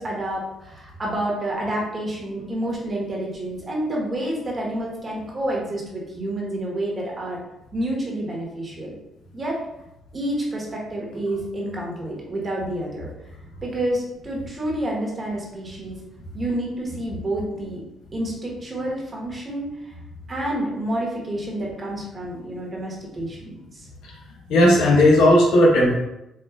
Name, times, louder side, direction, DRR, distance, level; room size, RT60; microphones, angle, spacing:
voice 1, 0.0-7.4 7.7-8.9 9.3-9.6 10.1-13.3 13.6-16.0 16.3-17.8 18.1-20.0 20.3-23.9, right 1 dB, 35° right, -2 dB, 1.1 m, -29 dB
voice 2, 24.5-26.0, left 1 dB, 85° left, -2 dB, 0.9 m, -15 dB
4.6 x 2.3 x 2.3 m, 0.90 s
cardioid pair, 90°, 0 cm